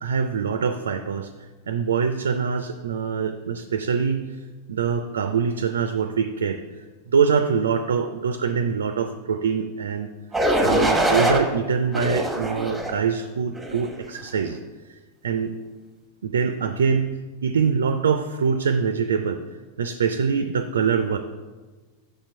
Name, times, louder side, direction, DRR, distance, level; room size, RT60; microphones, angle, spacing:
voice 1, 0.0-1.3 1.7-4.3 4.7-6.6 7.1-10.1 10.6-14.6 15.2-15.5 16.2-19.4 19.8-21.2, right 6 dB, 65° right, 8 dB, 0.4 m, -24 dB
sound 1, 10.3-11.4 11.9-13.0 13.6-13.9, right 1 dB, ahead, 1.0 m, -22 dB
6.6 x 4.4 x 5.3 m, 1.3 s
figure-of-eight pair, 90°, 0 cm